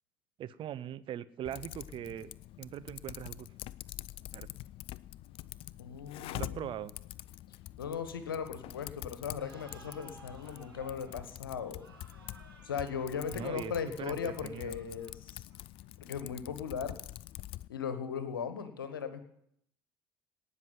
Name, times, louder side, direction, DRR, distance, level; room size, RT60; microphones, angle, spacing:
voice 1, 0.4-2.3 2.6-3.5 4.3-4.5 6.3-6.9 13.3-13.7 14.0-14.8, right 11 dB, 45° right, 16 dB, 0.7 m, -41 dB
Typing, 1.5-17.7, left 15 dB, 50° left, 0.4 m, -46 dB
voice 2, 5.8-6.7 7.8-11.8 12.6-15.4 16.0-17.0 17.7-19.2, left 7 dB, 80° left, 10 dB, 1.3 m, -38 dB
sound 1, 9.4-15.8, right 4 dB, 90° right, 2.0 m, -57 dB
18.5 x 6.2 x 9.5 m, 0.73 s
figure-of-eight pair, 60°, 12 cm